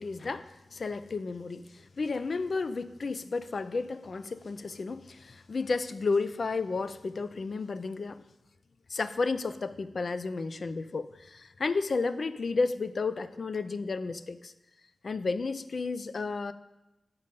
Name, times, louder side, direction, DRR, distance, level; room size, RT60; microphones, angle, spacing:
voice 1, 0.0-8.2 8.9-14.5 15.0-16.5, left 4 dB, 55° left, 12 dB, 0.4 m, -32 dB
7.9 x 5.5 x 5.2 m, 0.96 s
wide cardioid pair, 135°, 0 cm